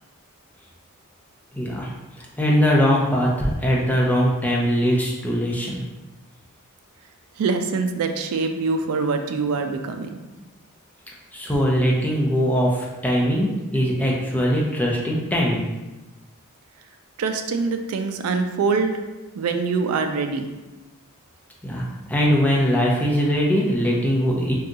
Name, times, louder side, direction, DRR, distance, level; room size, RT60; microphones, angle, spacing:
voice 1, 1.5-1.9 2.2-5.8 11.3-15.7 21.6-24.5, equal, 5° left, -3 dB, 0.4 m, -21 dB
voice 2, 7.4-10.2 17.2-19.0 19.3-20.5, right 4 dB, 80° right, 6 dB, 0.3 m, -24 dB
2.7 x 2.3 x 3.8 m, 1.1 s
head